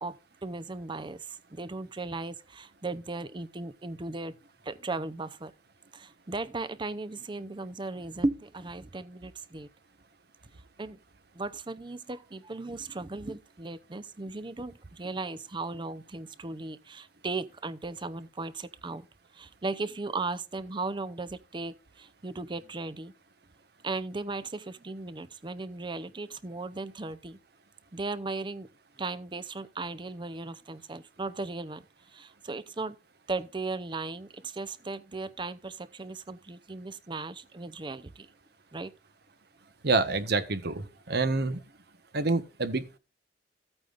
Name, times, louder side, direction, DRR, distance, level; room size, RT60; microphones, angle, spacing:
voice 1, 0.0-4.3 4.6-5.5 5.9-9.7 10.8-11.0 11.3-19.1 19.3-23.1 23.8-27.4 27.9-28.7 29.0-31.8 32.1-33.0 33.3-38.3 38.7-38.9, right 3 dB, 25° right, 0.7 m, -36 dB
voice 2, 39.8-41.6 42.1-43.0, right 3 dB, 65° right, 1.1 m, -27 dB
14.5 x 8.8 x 2.5 m
head